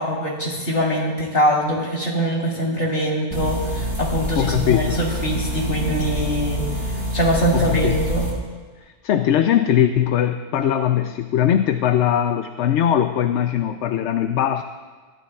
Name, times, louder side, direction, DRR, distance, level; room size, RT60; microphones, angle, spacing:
voice 1, 0.0-6.6 7.1-8.3, equal, 60° left, -3 dB, 3.7 m, -23 dB
sound 1, 3.3-8.3, equal, 30° right, 5.4 m, -26 dB
voice 2, 4.4-5.0 7.5-8.0 8.8-14.6, left 10 dB, 85° left, 8 dB, 0.9 m, -20 dB
24.5 x 15.0 x 2.4 m, 1.4 s
omnidirectional pair, 1.1 m